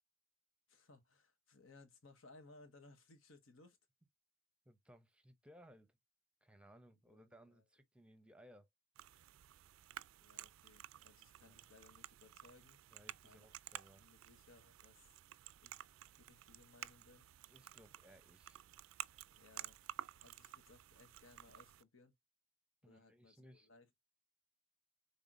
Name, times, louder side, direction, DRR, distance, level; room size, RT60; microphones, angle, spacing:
voice 1, 0.7-3.8 7.1-7.6 10.2-12.8 13.2-13.6 14.0-15.2 15.6-17.3 19.3-19.8 20.2-22.1 22.8-24.0, left 3 dB, 85° left, 1.3 m, -64 dB
voice 2, 4.7-6.0 6.4-8.7 11.4-11.6 12.9-14.0 17.5-18.6 22.8-23.7, equal, 5° right, 0.7 m, -63 dB
sound 1, 9.0-21.8, right 12 dB, 85° right, 0.4 m, -53 dB
5.6 x 3.6 x 2.5 m
head